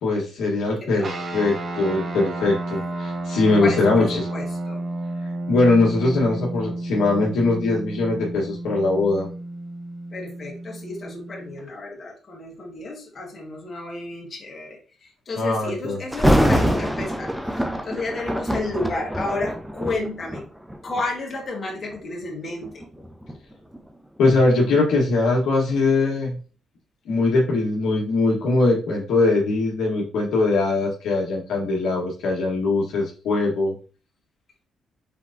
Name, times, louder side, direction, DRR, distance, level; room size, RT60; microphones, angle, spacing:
voice 1, 0.0-4.0 5.5-9.3 15.3-16.0 24.2-26.4 27.0-33.7, left 3 dB, 80° left, -3 dB, 1.5 m, -21 dB
sound 1, 1.0-11.7, right 2 dB, 45° right, 0.9 m, -32 dB
voice 2, 3.6-4.8 10.1-20.5 20.8-23.1 25.7-25.8, left 2 dB, 40° left, -1 dB, 1.7 m, -32 dB
Thunder, 16.1-21.1 21.7-22.0 22.6-25.4 25.8-25.9, equal, 5° right, 0.6 m, -25 dB
5.0 x 3.3 x 2.7 m, 0.36 s
cardioid pair, 90°, 0 cm